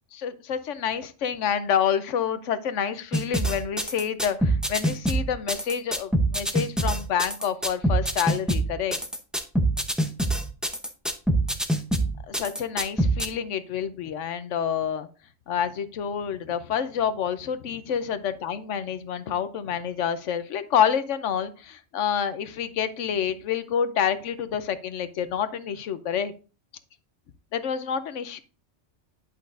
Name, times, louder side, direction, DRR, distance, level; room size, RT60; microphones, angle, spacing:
voice 1, 0.1-9.0 12.3-15.1 15.5-26.3 27.5-28.4, left 8 dB, 85° left, 12 dB, 1.0 m, -28 dB
sound 1, 3.1-13.3, right 1 dB, ahead, 0.6 m, -25 dB
10.5 x 5.6 x 2.6 m, 0.35 s
omnidirectional pair, 1.2 m